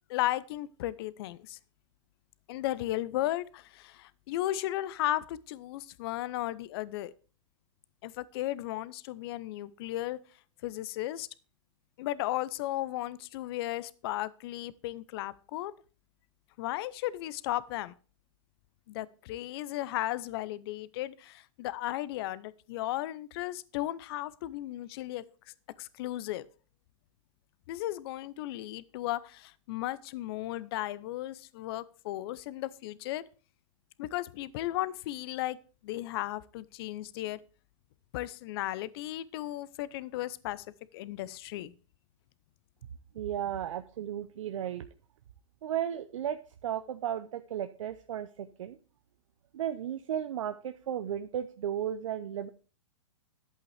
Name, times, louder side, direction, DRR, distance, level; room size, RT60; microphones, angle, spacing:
voice 1, 0.1-1.6 2.5-7.1 8.0-10.2 10.6-11.3 12.0-15.7 16.6-17.9 18.9-25.2 25.8-26.5 27.7-33.2 34.0-35.6 35.8-37.4 38.1-40.7 40.9-41.7, left 15 dB, 50° left, 18 dB, 0.6 m, -35 dB
voice 2, 43.1-44.8 45.6-48.8 49.5-52.5, right 10 dB, 75° right, 9 dB, 0.7 m, -34 dB
11.0 x 8.3 x 3.3 m, 0.37 s
hypercardioid pair, 130°, 17 cm